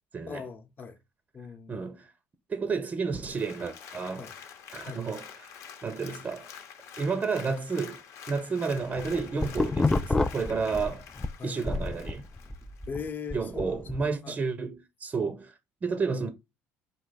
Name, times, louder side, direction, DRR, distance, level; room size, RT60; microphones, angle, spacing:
voice 1, 0.3-1.0 1.3-1.8 4.2-4.3 4.8-5.1 11.4-11.6 12.9-13.8 14.2-14.4, left 6 dB, 35° left, 0.9 m, -39 dB
voice 2, 1.7-2.1 2.5-4.3 4.7-5.5 5.8-6.5 7.0-8.0 8.3-11.0 11.4-12.2 13.3-16.3, right 4 dB, 25° right, 0.6 m, -31 dB
Applause, 3.2-12.9 13.4-13.5, left 7 dB, 65° left, 0.9 m, -47 dB
sound 1, 8.8-11.3 11.7-14.0, left 3 dB, 15° left, 0.3 m, -29 dB
4.6 x 2.8 x 3.9 m
cardioid pair, 110°, 5 cm